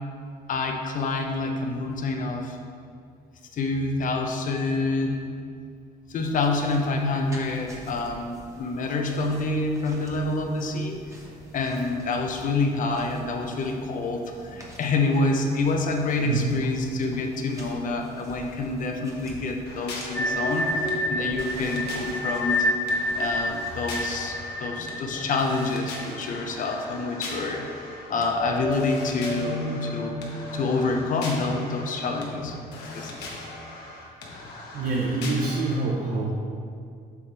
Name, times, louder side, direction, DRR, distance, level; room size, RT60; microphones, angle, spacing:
voice 1, 0.5-2.6 3.5-5.3 6.1-11.2 11.5-22.7 23.2-27.7 28.1-30.2 30.5-33.3, left 3 dB, 50° left, 3 dB, 0.9 m, -27 dB
sound 1, 6.2-24.2, right 1 dB, 20° right, 1.3 m, -47 dB
sound 2, 19.7-35.8, left 2 dB, 75° left, 1.4 m, -40 dB
sound 3, 20.1-27.0 27.3-27.4 27.9-33.3, left 1 dB, 15° left, 1.1 m, -30 dB
voice 2, 34.7-36.3, right 3 dB, 55° right, -4 dB, 1.0 m, -26 dB
8.3 x 5.7 x 3.4 m, 2.3 s
cardioid pair, 110°, 17 cm